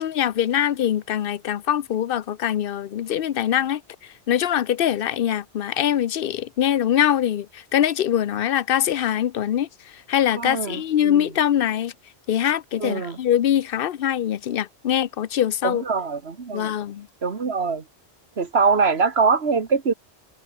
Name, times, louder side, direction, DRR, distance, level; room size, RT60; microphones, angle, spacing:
voice 1, 0.0-3.8 4.3-9.7 10.1-11.9 12.3-15.8 16.5-17.1, left 10 dB, 60° left, 0.8 m, -23 dB
voice 2, 10.4-11.3 12.8-13.2 15.6-16.7 17.2-17.8 18.4-19.9, right 5 dB, 70° right, 2.0 m, -23 dB
omnidirectional pair, 1.1 m